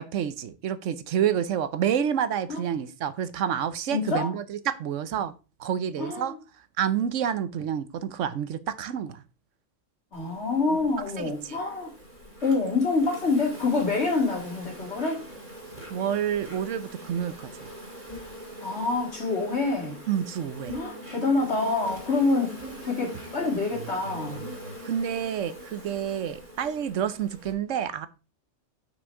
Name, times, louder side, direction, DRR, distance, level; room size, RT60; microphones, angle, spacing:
voice 1, 0.0-5.3 5.6-6.3 6.8-9.2 11.2-11.6 15.9-17.7 20.1-20.8 24.8-28.1, right 9 dB, 80° right, 1.1 m, -29 dB
voice 2, 3.9-4.3 6.0-6.4 10.1-11.9 12.4-15.2 18.6-20.0 20.7-24.4, left 3 dB, 60° left, 3.0 m, -26 dB
Insect, 10.1-27.5, right 1 dB, 30° right, 3.3 m, -43 dB
6.3 x 6.1 x 4.6 m
omnidirectional pair, 1.3 m